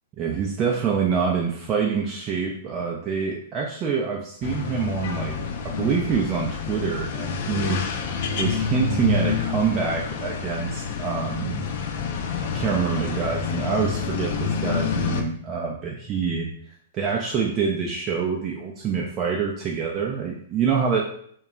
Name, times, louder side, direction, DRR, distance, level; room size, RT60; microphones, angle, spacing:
voice 1, 0.2-5.4 5.6-7.8 8.4-11.6 12.4-16.5 16.9-21.0, right 6 dB, 30° right, -2 dB, 0.4 m, -26 dB
sound 1, 4.4-15.2, left 5 dB, 55° left, 0.3 m, -28 dB
2.2 x 2.0 x 3.6 m, 0.63 s
hypercardioid pair, 115°, 0 cm